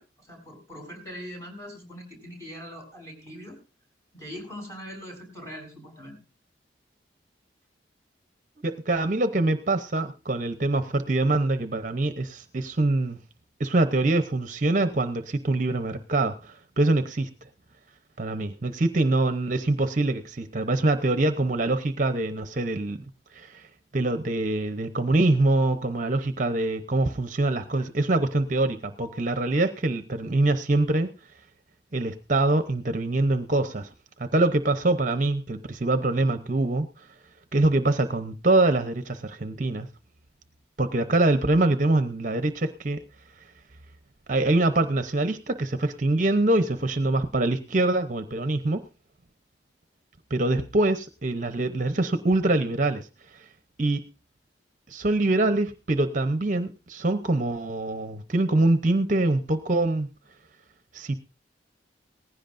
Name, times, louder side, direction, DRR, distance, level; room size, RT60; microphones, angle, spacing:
voice 1, 0.0-3.6 4.1-6.2, equal, 15° left, 1 dB, 6.8 m, -41 dB
voice 2, 8.6-13.2 13.6-17.3 18.2-23.0 23.3-23.7 23.9-31.1 31.9-33.9 34.2-37.0 37.5-39.9 40.8-43.0 44.3-48.8 50.3-53.1 53.3-53.4 53.8-54.0 54.9-60.1 60.9-61.2, right 2 dB, 45° right, 10 dB, 0.8 m, -24 dB
19.0 x 16.0 x 2.6 m, 0.30 s
head